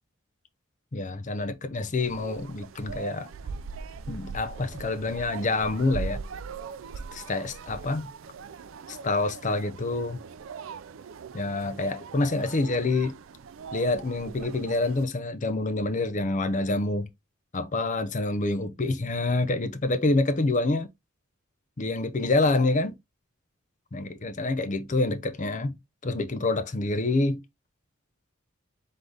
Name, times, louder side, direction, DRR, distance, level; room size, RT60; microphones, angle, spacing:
voice 1, 0.9-3.3 4.1-6.2 7.1-8.1 8.9-10.2 11.3-13.2 13.7-17.1 17.5-20.9 21.8-22.9 23.9-25.8 26.0-27.4, left 2 dB, 35° left, 0.6 m, -27 dB
sound 1, 2.0-15.1, right 5 dB, 65° right, 0.4 m, -41 dB
3.8 x 3.8 x 3.3 m
head